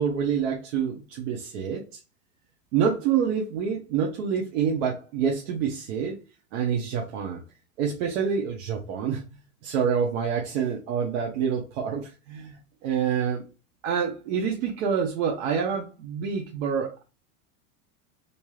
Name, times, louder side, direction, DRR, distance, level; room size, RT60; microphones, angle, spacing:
voice 1, 0.0-1.9 2.7-6.2 6.5-7.4 7.8-9.2 9.6-13.4 13.8-17.0, right 7 dB, 60° right, 0 dB, 0.7 m, -27 dB
3.2 x 2.6 x 2.2 m, 0.30 s
supercardioid pair, 155°, 43 cm